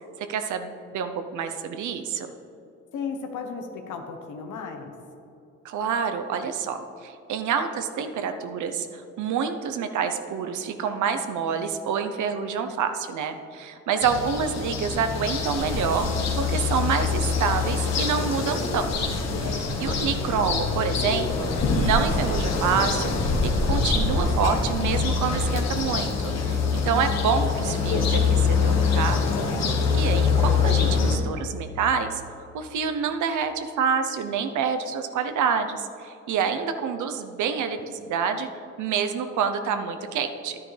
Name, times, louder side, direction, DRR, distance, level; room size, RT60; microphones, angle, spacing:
voice 1, 0.2-2.3 5.6-18.9 19.4-26.1 26.4-29.2 29.9-32.2 32.5-38.5 38.8-40.6, right 6 dB, 75° right, 8 dB, 0.8 m, -27 dB
voice 2, 2.9-4.9 19.6-20.2 29.5-30.1, left 5 dB, 80° left, 4 dB, 1.1 m, -36 dB
sound 1, 14.0-31.2, left 5 dB, 60° left, 1.3 m, -24 dB
11.0 x 9.8 x 3.3 m, 2.6 s
cardioid pair, 90°, 30 cm